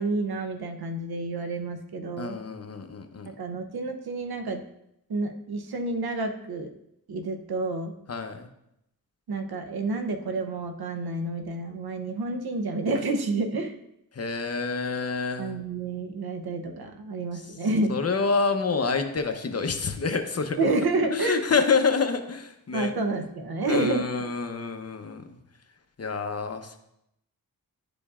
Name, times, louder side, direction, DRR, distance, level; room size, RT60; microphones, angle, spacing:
voice 1, 0.0-2.4 3.4-4.6 5.1-6.7 7.1-7.9 9.3-13.8 15.4-17.9 20.6-21.4 22.7-24.0, right 2 dB, 80° right, 6 dB, 0.8 m, -29 dB
voice 2, 2.2-3.3 8.1-8.5 14.1-15.6 17.9-20.7 21.1-22.9 23.7-25.2 26.0-26.8, left 4 dB, 40° left, 6 dB, 0.8 m, -27 dB
11.0 x 5.1 x 2.4 m, 0.81 s
wide cardioid pair, 70°, 36 cm